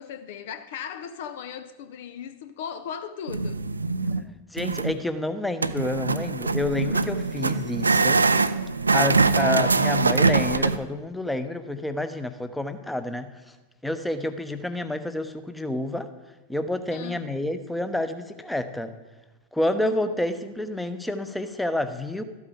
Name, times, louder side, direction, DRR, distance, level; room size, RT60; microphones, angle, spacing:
voice 1, 0.0-3.6 9.2-9.5 16.9-17.2 19.8-20.1, left 8 dB, 55° left, 0.6 m, -37 dB
sound 1, 3.3-4.2 4.6-4.9 5.6-10.8, right 4 dB, 80° right, 0.4 m, -23 dB
voice 2, 4.5-8.2 8.9-13.5 13.8-16.1 16.5-18.9 19.5-22.2, left 1 dB, 5° left, 0.9 m, -29 dB
13.5 x 8.5 x 5.1 m
figure-of-eight pair, 90°, 0 cm